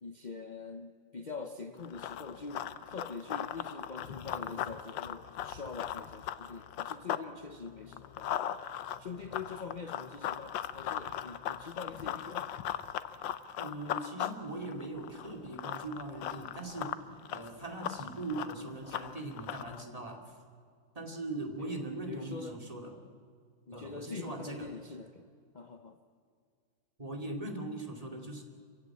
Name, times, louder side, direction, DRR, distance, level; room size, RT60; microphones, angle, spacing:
voice 1, 0.0-8.6 9.0-12.5 21.6-22.6 23.7-25.3 25.5-26.0, left 4 dB, 45° left, 6 dB, 0.5 m, -44 dB
Run, 1.8-7.3 7.6-19.8, left 11 dB, 75° left, 1.5 m, -38 dB
voice 2, 13.6-17.0 17.3-20.2 20.9-22.9 23.7-24.7 27.0-28.4, right 2 dB, 20° right, 3 dB, 2.5 m, -40 dB
26.5 x 15.5 x 8.8 m, 2.1 s
omnidirectional pair, 2.1 m